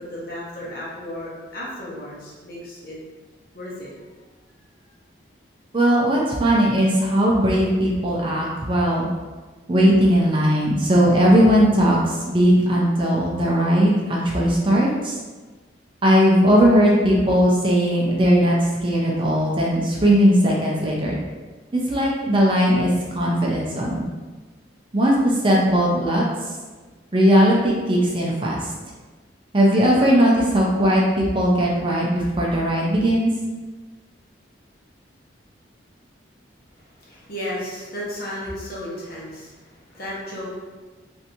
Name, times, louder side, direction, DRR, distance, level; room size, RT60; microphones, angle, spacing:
voice 1, 0.1-3.0 3.5-3.9 36.8-40.5, left 1 dB, 50° left, -6 dB, 0.9 m, -34 dB
voice 2, 5.7-9.1 9.7-15.2 16.0-21.2 21.7-24.1 24.9-26.5 27.1-28.7 29.5-33.3, equal, 25° right, -3 dB, 0.5 m, -18 dB
3.3 x 2.6 x 2.8 m, 1.3 s
head